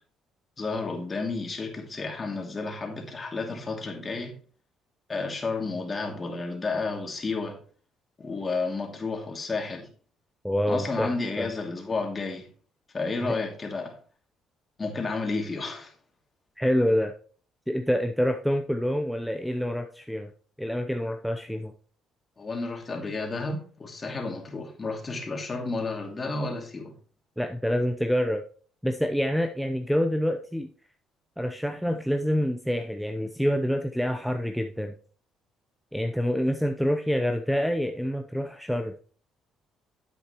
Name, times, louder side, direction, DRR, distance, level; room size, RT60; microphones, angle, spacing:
voice 1, 0.6-4.4 5.1-7.6 8.2-9.9 10.7-12.5 12.9-14.0 14.8-15.9 22.4-26.9, left 3 dB, 30° left, 2.6 m, -31 dB
voice 2, 10.4-11.5 13.2-13.4 16.6-17.1 17.7-20.3 20.6-21.7 27.4-28.4 28.8-30.7 31.4-34.9 35.9-38.9, equal, ahead, 0.7 m, -27 dB
10.0 x 8.4 x 3.1 m
cardioid pair, 85°, 0 cm